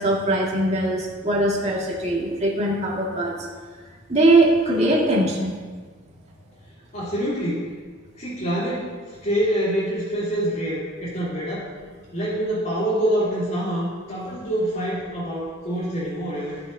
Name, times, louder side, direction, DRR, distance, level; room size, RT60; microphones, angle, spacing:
voice 1, 0.0-3.4 4.1-5.6, right 1 dB, 35° right, -3 dB, 2.1 m, -21 dB
voice 2, 6.9-7.7 8.2-11.6 12.1-16.6, equal, 40° left, -12 dB, 3.2 m, -26 dB
16.0 x 7.5 x 2.8 m, 1.5 s
head